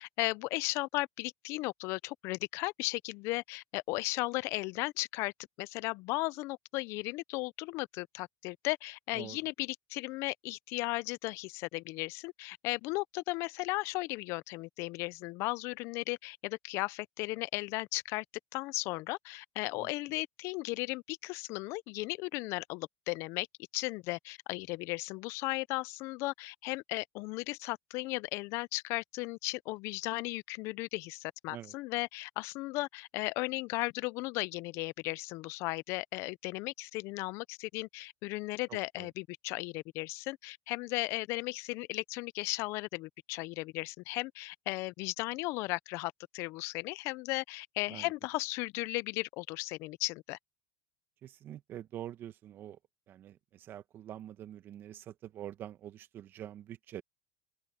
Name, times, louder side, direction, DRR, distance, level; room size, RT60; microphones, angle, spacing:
voice 1, 0.0-5.3 5.6-18.2 18.5-23.5 23.7-50.4, left 22 dB, 65° left, 0.5 m, -36 dB
voice 2, 38.7-39.1 47.9-48.1 51.2-52.8 53.1-57.0, right 11 dB, 45° right, 1.2 m, -46 dB
open air
supercardioid pair, 115°, 5 cm